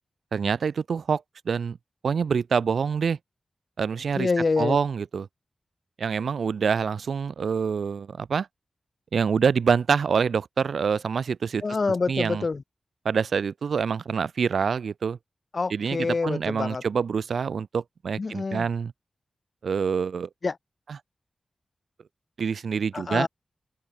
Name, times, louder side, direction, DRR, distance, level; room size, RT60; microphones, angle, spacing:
voice 1, 0.3-1.8 2.0-3.2 3.8-4.3 4.6-5.3 6.0-8.5 9.1-11.6 12.1-12.4 13.0-15.2 15.7-18.9 19.6-20.3 22.4-23.3, right 6 dB, 90° right, 0.5 m, -26 dB
voice 2, 4.2-4.8 11.6-12.6 15.5-16.8 18.2-18.7 20.4-20.6 22.9-23.3, left 4 dB, 55° left, 0.9 m, -26 dB
open air
cardioid pair, 65°, 0 cm